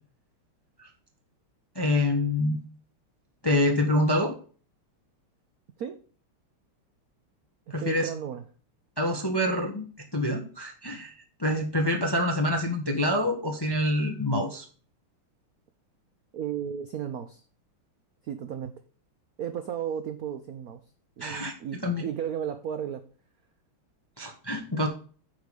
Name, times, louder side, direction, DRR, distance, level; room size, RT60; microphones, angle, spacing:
voice 1, 1.7-2.6 3.4-4.3 7.7-8.1 9.0-9.9 10.1-11.1 11.4-14.6 21.2-21.5 21.8-22.1 24.2-24.9, left 1 dB, 20° left, 3 dB, 0.7 m, -26 dB
voice 2, 7.8-8.4 16.3-17.4 18.2-18.7 19.4-20.8 21.2-23.0, right 9 dB, 70° right, 9 dB, 0.8 m, -34 dB
9.2 x 5.0 x 5.2 m, 0.40 s
omnidirectional pair, 2.4 m